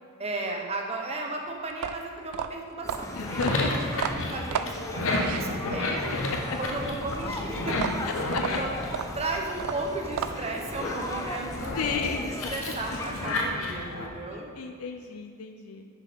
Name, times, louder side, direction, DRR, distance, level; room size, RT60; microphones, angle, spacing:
voice 1, 0.2-6.1 6.6-7.8 8.6-8.7 9.2-14.5, right 2 dB, 30° right, 1 dB, 0.9 m, -35 dB
sound 1, 1.7-6.0 7.7-10.6, right 8 dB, 85° right, 0.4 m, -34 dB
sound 2, 2.8-13.3, left 2 dB, 15° left, 0.4 m, -38 dB
sound 3, 3.0-9.7 10.2-14.1, left 2 dB, 65° left, 1.0 m, -32 dB
voice 2, 3.1-3.8 8.0-8.6 11.8-12.3 12.9-13.0 14.6-15.9, left 5 dB, 80° left, 5 dB, 0.5 m, -32 dB
9.8 x 5.9 x 3.6 m, 2.1 s
head